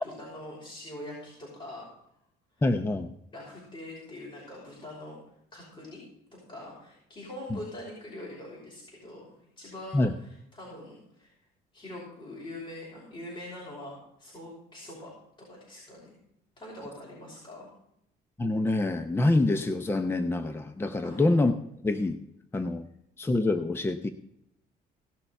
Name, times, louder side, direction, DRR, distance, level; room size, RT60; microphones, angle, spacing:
voice 1, 0.0-1.9 3.3-5.2 5.5-6.0 6.3-11.3 11.7-15.1 15.5-16.2 16.6-17.7 21.0-21.2, left 1 dB, 30° left, -4 dB, 5.6 m, -43 dB
voice 2, 2.6-3.1 7.5-7.6 9.9-10.1 18.4-21.5 21.8-22.2 22.5-22.9 23.2-24.1, left 2 dB, 15° left, 9 dB, 0.7 m, -26 dB
17.0 x 6.7 x 5.9 m, 0.75 s
cardioid pair, 110°, 17 cm